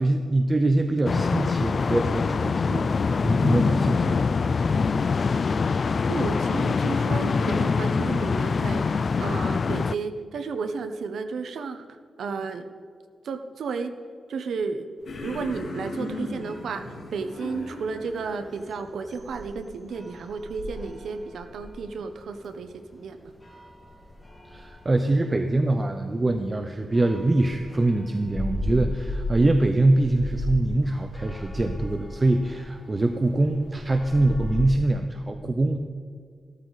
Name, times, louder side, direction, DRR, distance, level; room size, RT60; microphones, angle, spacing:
voice 1, 0.0-4.6 24.5-35.8, right 2 dB, 25° right, 6 dB, 0.6 m, -24 dB
sound 1, 1.0-9.9, left 5 dB, 45° left, 0.3 m, -24 dB
voice 2, 6.1-11.8 12.2-12.7 13.2-14.0 14.3-14.9 15.2-23.3, right 4 dB, 85° right, 8 dB, 1.0 m, -33 dB
sound 2, 15.0-18.6, left 2 dB, 65° left, 3.5 m, -37 dB
sound 3, 15.0-34.7, left 1 dB, 15° left, 2.1 m, -38 dB
15.0 x 13.0 x 4.1 m, 2.2 s
wide cardioid pair, 135°, 0 cm